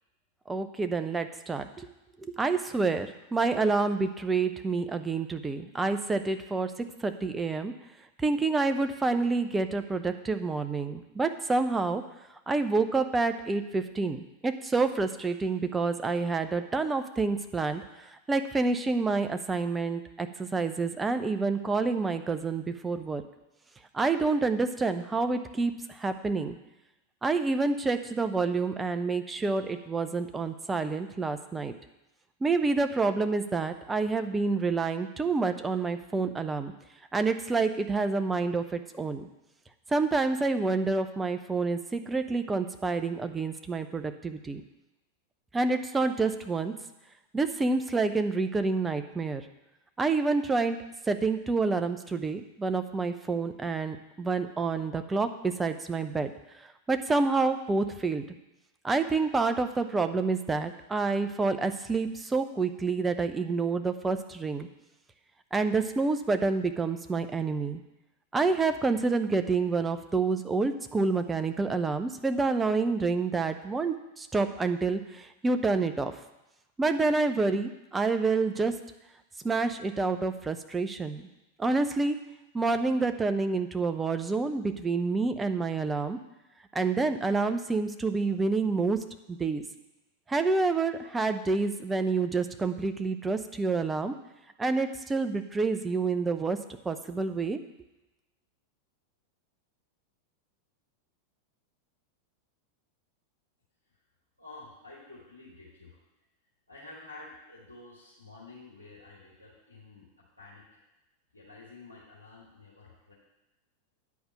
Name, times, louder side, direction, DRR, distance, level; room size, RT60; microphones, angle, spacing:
voice 1, 0.5-1.9 2.2-6.7 7.0-7.7 8.2-12.0 12.5-17.8 18.3-23.2 23.9-25.7 26.0-26.6 27.2-31.7 32.4-36.7 37.1-39.3 39.9-44.6 45.5-46.7 47.3-49.4 50.0-50.8 51.1-56.3 56.9-58.2 58.8-64.7 65.5-67.8 68.3-76.1 76.8-78.7 79.4-81.2 81.6-82.2 82.5-86.2 86.7-89.0 89.3-89.6 90.3-94.1 94.6-96.6 96.8-97.6, right 3 dB, 15° right, 8 dB, 0.7 m, -28 dB
voice 2, 104.4-106.0 106.7-110.8 111.3-113.1, left 3 dB, 85° left, -8 dB, 2.3 m, -50 dB
9.5 x 5.1 x 7.4 m, 0.97 s
figure-of-eight pair, 90°, 0 cm